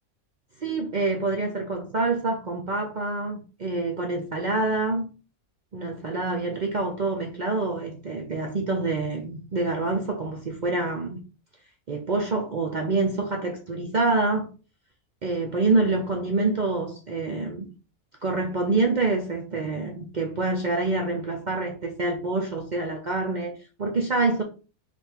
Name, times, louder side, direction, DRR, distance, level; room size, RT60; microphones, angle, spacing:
voice 1, 0.6-5.1 5.7-11.2 11.9-14.5 15.2-17.7 18.2-24.4, right 3 dB, 55° right, 0.5 m, -26 dB
3.6 x 2.5 x 4.5 m
omnidirectional pair, 1.5 m